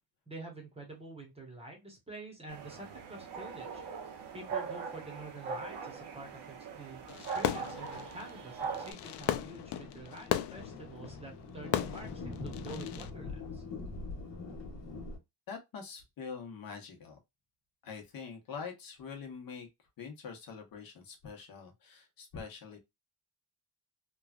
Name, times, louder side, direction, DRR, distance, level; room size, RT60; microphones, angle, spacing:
voice 1, 0.3-3.8 4.3-13.6, right 2 dB, 15° right, 0.9 m, -48 dB
sound 1, 2.5-8.9, right 5 dB, 65° right, 0.9 m, -41 dB
Fireworks, 7.1-13.1, left 12 dB, 70° left, 0.5 m, -37 dB
Thunder, 8.3-15.2, left 3 dB, 35° left, 1.1 m, -44 dB
voice 2, 15.5-17.2 17.8-19.7 20.0-22.8, left 5 dB, 50° left, 1.0 m, -44 dB
3.1 x 2.3 x 2.3 m
cardioid pair, 155°, 44 cm